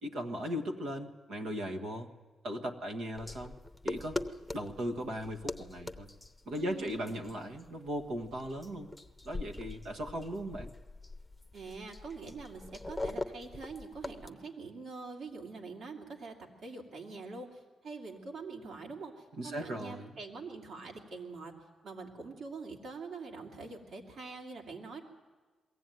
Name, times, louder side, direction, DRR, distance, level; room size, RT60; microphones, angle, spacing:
voice 1, 0.0-2.1 2.4-3.5 3.8-4.2 4.5-6.1 6.4-8.9 9.2-10.7 19.3-20.1, equal, 85° right, 4 dB, 1.5 m, -37 dB
sound 1, 3.1-14.3, left 2 dB, 5° left, 0.8 m, -43 dB
voice 2, 6.6-7.1 11.5-21.6 21.8-25.0, right 4 dB, 65° right, 2 dB, 2.6 m, -44 dB
22.0 x 15.5 x 9.2 m, 1.4 s
cardioid pair, 105°, 0 cm